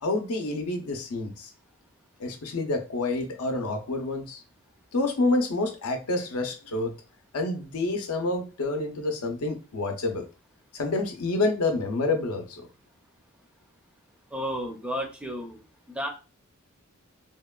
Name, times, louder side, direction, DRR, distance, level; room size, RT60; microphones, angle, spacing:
voice 1, 0.0-1.5 2.2-4.4 4.9-7.0 7.3-10.2 10.7-12.7, left 2 dB, 85° left, 4 dB, 0.6 m, -28 dB
voice 2, 14.3-15.6 15.9-16.1, equal, 5° right, 1 dB, 0.4 m, -32 dB
2.9 x 2.1 x 2.2 m, 0.31 s
head